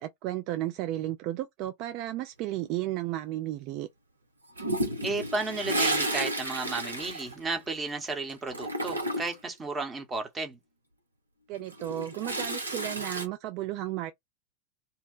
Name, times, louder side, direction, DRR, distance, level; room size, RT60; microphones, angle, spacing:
voice 1, 0.0-3.9 11.5-14.1, right 14 dB, 40° right, 0.4 m, -33 dB
Toilet flush, 4.6-8.0 8.3-9.5 11.5-13.3, right 1 dB, 80° right, 0.8 m, -32 dB
voice 2, 5.0-10.6, right 3 dB, 15° right, 1.0 m, -33 dB
2.8 x 2.2 x 3.8 m
figure-of-eight pair, 90°, 0 cm